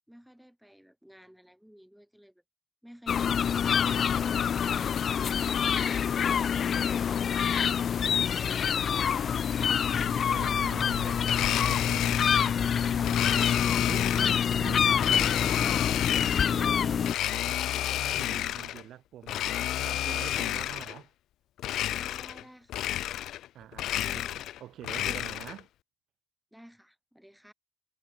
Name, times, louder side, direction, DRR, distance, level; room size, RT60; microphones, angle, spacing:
voice 1, 0.1-2.4 2.8-5.0 7.4-9.2 21.9-22.8 23.8-24.4 26.5-27.5, equal, ahead, 6.5 m, -53 dB
sound 1, 3.1-17.1, left 8 dB, 55° left, 0.9 m, -26 dB
voice 2, 9.9-21.1 23.5-25.7, right 12 dB, 75° right, 6.2 m, -45 dB
Domestic sounds home sounds, 11.2-12.5 13.0-14.5 15.0-16.6 17.0-18.8 19.2-21.0 21.6-22.4 22.7-23.5 23.7-25.6, left 13 dB, 80° left, 1.5 m, -31 dB
cardioid pair, 90°, 0 cm